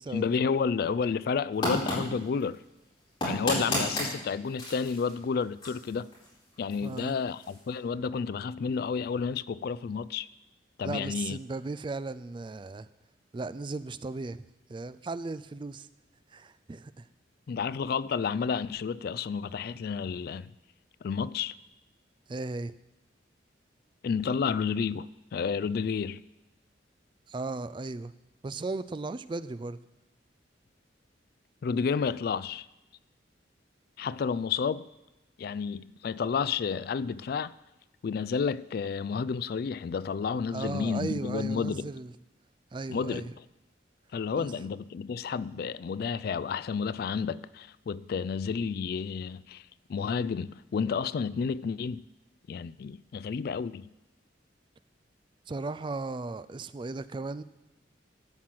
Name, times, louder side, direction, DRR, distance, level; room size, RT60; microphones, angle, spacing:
voice 1, 0.1-2.6 3.2-6.1 6.6-10.3 10.8-11.4 17.5-20.5 21.0-21.5 24.0-26.2 31.6-32.7 34.0-34.9 35.4-37.5 38.0-41.9 42.9-43.4 44.1-52.0 52.5-53.9, left 6 dB, 55° left, 0.3 m, -31 dB
sound 1, 1.5-7.8, equal, 25° left, 4.9 m, -35 dB
voice 2, 6.8-7.2 10.8-12.9 13.3-14.4 14.7-15.9 16.3-17.0 22.3-22.7 27.3-28.1 28.4-29.8 40.5-42.1 42.7-43.3 44.4-44.5 55.5-57.4, right 3 dB, 25° right, 0.3 m, -36 dB
13.0 x 5.9 x 7.6 m
head